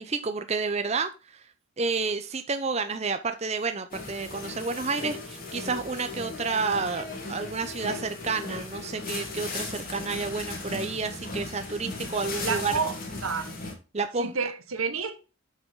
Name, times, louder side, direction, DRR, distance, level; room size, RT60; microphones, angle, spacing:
voice 1, 0.0-1.5 1.8-12.7 13.9-14.3, right 4 dB, 30° right, 0.6 m, -30 dB
sound 1, 3.9-13.7, left 3 dB, 45° left, 2.5 m, -37 dB
voice 2, 12.4-13.5 14.2-15.1, right 5 dB, 85° right, 1.3 m, -30 dB
7.9 x 6.5 x 3.7 m
head